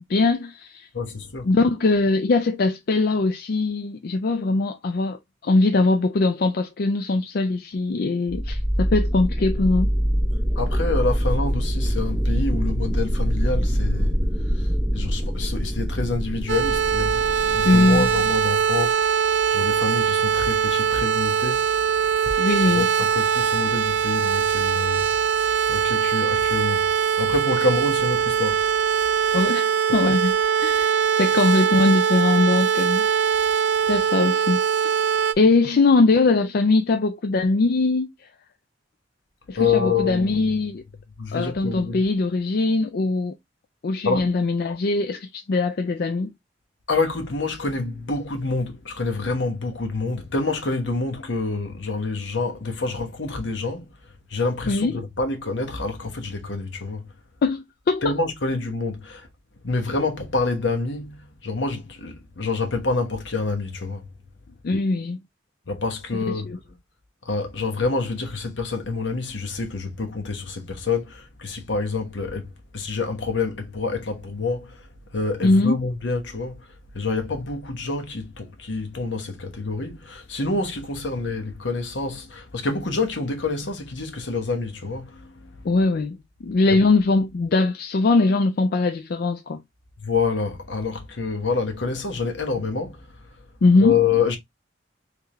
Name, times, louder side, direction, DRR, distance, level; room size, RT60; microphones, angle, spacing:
voice 1, 0.1-0.9 1.4-9.9 17.6-18.1 22.4-22.9 29.3-33.0 33.9-34.9 35.4-38.1 39.5-40.8 41.3-43.3 43.8-46.3 54.7-54.9 57.4-58.1 64.6-65.2 66.3-66.6 75.4-75.8 85.6-86.2 86.4-89.6 93.6-94.0, left 3 dB, 55° left, 0.4 m, -21 dB
voice 2, 0.9-1.5 10.5-14.2 14.5-19.2 19.5-21.7 22.2-22.3 22.7-25.1 25.7-26.9 27.2-28.6 39.6-40.6 41.2-42.0 44.0-44.4 46.9-53.9 54.3-57.1 58.0-59.3 59.6-64.1 65.7-66.6 67.2-74.9 75.1-76.7 76.9-85.3 86.7-86.9 90.0-93.1 93.8-94.4, left 4 dB, 75° left, 1.2 m, -27 dB
sound 1, 8.3-18.9, equal, 5° right, 0.6 m, -24 dB
sound 2, 16.5-35.3, right 7 dB, 70° right, 0.4 m, -22 dB
3.6 x 3.4 x 3.0 m
head